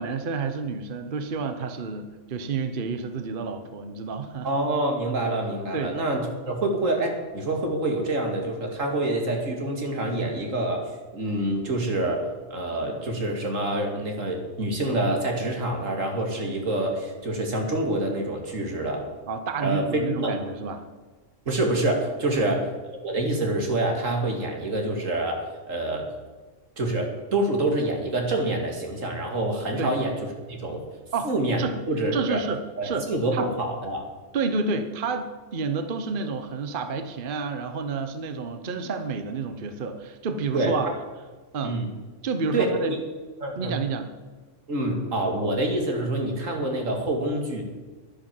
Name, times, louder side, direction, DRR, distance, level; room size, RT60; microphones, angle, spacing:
voice 1, 0.0-4.5 5.7-6.0 19.3-20.8 22.4-22.5 29.8-29.9 31.1-31.8 32.1-33.1 33.3-33.5 34.3-40.9 41.5-41.8 42.2-42.9 43.6-44.1, right 4 dB, 45° right, 8 dB, 1.0 m, -30 dB
voice 2, 4.4-12.2 12.5-19.1 19.6-20.3 21.5-22.7 23.0-26.1 26.8-30.1 30.5-30.8 31.2-32.4 32.8-34.1 40.5-40.8 41.6-41.9 42.5-43.0 43.4-43.8 44.7-47.6, right 1 dB, 80° right, 2 dB, 2.7 m, -26 dB
11.0 x 10.0 x 7.6 m, 1.3 s
omnidirectional pair, 1.3 m